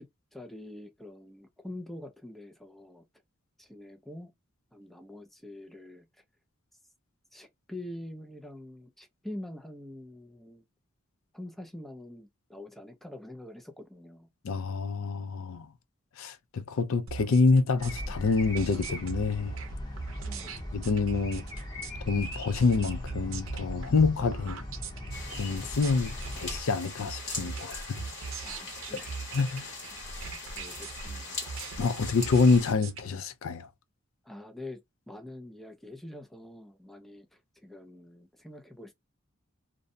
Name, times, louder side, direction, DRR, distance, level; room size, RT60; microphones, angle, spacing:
voice 1, 0.0-3.1 3.6-4.3 4.7-6.1 7.3-10.6 11.3-14.3 20.3-20.6 28.4-29.1 30.6-31.6 34.2-34.8 35.1-38.9, left 1 dB, ahead, 0.4 m, -45 dB
voice 2, 14.4-15.7 16.2-19.6 20.7-21.4 22.1-24.6 25.3-28.0 29.3-29.7 31.8-33.7, left 4 dB, 75° left, 0.4 m, -27 dB
sound 1, 17.1-33.0, right 4 dB, 75° right, 0.6 m, -41 dB
sound 2, 17.8-26.6, equal, 20° left, 0.7 m, -39 dB
sound 3, 25.1-32.7, left 2 dB, 50° left, 1.2 m, -41 dB
2.6 x 2.1 x 2.5 m
head